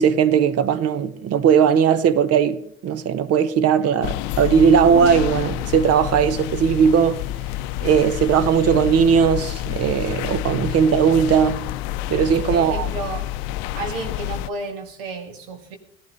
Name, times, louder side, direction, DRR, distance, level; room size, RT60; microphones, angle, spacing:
voice 1, 0.0-7.2 7.8-11.6 12.1-12.9, right 7 dB, 55° right, 1.0 m, -18 dB
sound 1, 4.0-14.5, left 14 dB, 80° left, 0.5 m, -28 dB
voice 2, 12.4-13.3 13.7-15.8, right 3 dB, 90° right, 1.7 m, -32 dB
17.0 x 12.0 x 4.0 m
supercardioid pair, 75°, 29 cm